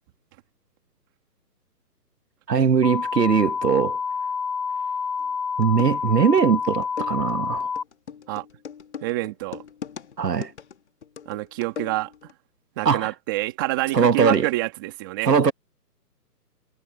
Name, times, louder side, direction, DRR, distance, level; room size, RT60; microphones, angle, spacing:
voice 1, 2.5-4.0 5.6-7.7 10.2-10.5 12.9-13.1 13.9-14.5 15.2-15.5, right 6 dB, 75° right, 1.8 m, -20 dB
sound 1, 2.8-7.8, left 5 dB, 80° left, 2.0 m, -28 dB
sound 2, 5.2-5.3 5.6-12.3, left 7 dB, 40° left, 3.2 m, -40 dB
voice 2, 9.0-9.6 11.3-12.1 12.8-15.3, right 18 dB, 15° right, 2.3 m, -27 dB
hypercardioid pair, 175°, 49 cm